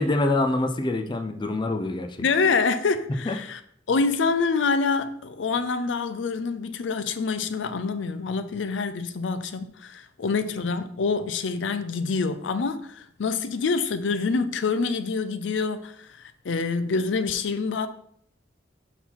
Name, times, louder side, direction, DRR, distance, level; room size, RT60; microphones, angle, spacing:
voice 1, 0.0-2.2 3.3-3.4, left 2 dB, 25° left, 0.4 m, -25 dB
voice 2, 2.2-3.6 3.9-17.9, left 4 dB, 80° left, 0.5 m, -26 dB
5.5 x 4.7 x 4.2 m
head